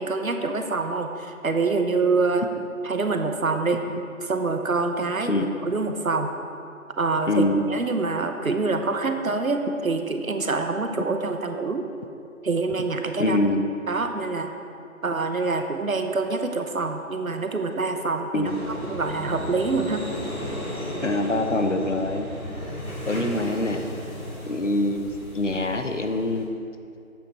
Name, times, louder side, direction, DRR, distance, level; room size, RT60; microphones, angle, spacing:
voice 1, 0.0-2.4 2.8-3.8 4.2-6.3 7.0-11.9 12.4-13.4 13.9-14.5 15.0-18.5 18.9-20.1, right 3 dB, 75° right, 6 dB, 0.8 m, -26 dB
voice 2, 7.3-7.6 13.2-13.7 18.3-18.7 21.0-22.3 23.1-23.8 24.5-25.0 25.3-26.5, left 2 dB, 60° left, 6 dB, 0.7 m, -24 dB
sound 1, 18.4-26.5, equal, 85° left, 2.1 m, -34 dB
8.6 x 6.0 x 4.4 m, 2.5 s
figure-of-eight pair, 170°, 42 cm